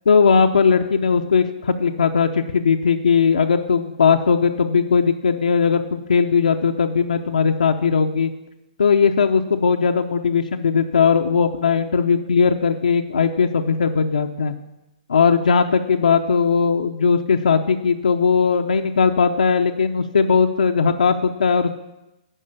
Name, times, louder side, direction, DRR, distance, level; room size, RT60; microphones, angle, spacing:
voice 1, 0.1-8.3 8.8-14.5 15.1-21.7, left 6 dB, 90° left, 4 dB, 0.6 m, -18 dB
11.0 x 5.0 x 6.7 m, 0.96 s
hypercardioid pair, 145°, 4 cm